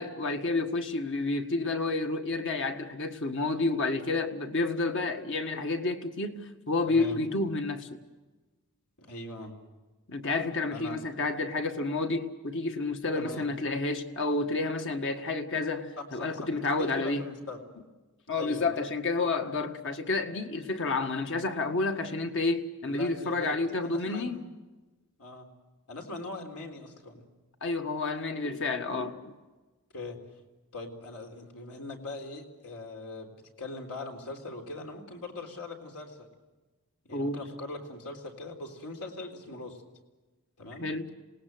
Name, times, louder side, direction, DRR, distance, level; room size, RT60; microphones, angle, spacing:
voice 1, 0.0-8.0 10.1-17.3 18.3-24.4 27.6-29.3 37.1-37.4 40.8-41.1, left 3 dB, 55° left, 1.7 m, -30 dB
voice 2, 6.9-7.2 9.0-9.5 10.7-11.0 13.1-13.5 16.0-16.5 16.8-17.6 18.4-18.7 22.9-23.6 23.8-24.4 25.2-25.5 25.9-27.3 29.9-30.2 30.7-36.3 37.0-39.8 40.6-40.9, left 2 dB, 80° left, 3.8 m, -41 dB
27.0 x 19.0 x 7.9 m
head